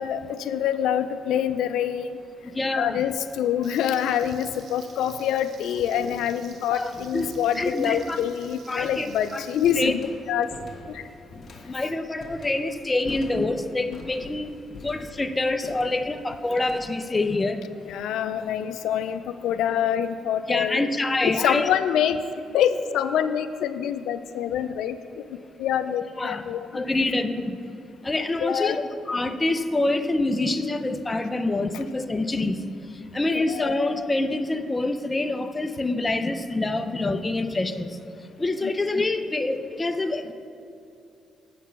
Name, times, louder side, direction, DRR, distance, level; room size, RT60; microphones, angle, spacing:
voice 1, 0.0-2.1 2.8-10.5 10.9-11.0 13.9-14.0 17.8-20.9 21.2-22.2 22.5-25.0 25.6-26.7 28.4-28.8 33.3-33.8 38.6-38.7, left 9 dB, 85° left, 11 dB, 0.3 m, -26 dB
sound 1, 2.2-2.6 3.6-3.7 4.5-4.6 5.0-18.5, left 2 dB, 45° left, 1.3 m, -46 dB
voice 2, 2.5-3.1 6.7-8.2 8.7-9.9 11.7-14.5 14.8-17.6 20.5-21.7 26.2-26.4 26.7-27.6 28.0-32.6 33.1-37.9 38.4-40.3, left 2 dB, 20° left, 8 dB, 0.5 m, -26 dB
Frying (food), 3.6-9.7, right 5 dB, 65° right, 0.9 m, -50 dB
8.2 x 5.9 x 5.8 m, 2.7 s
cardioid pair, 90°, 0 cm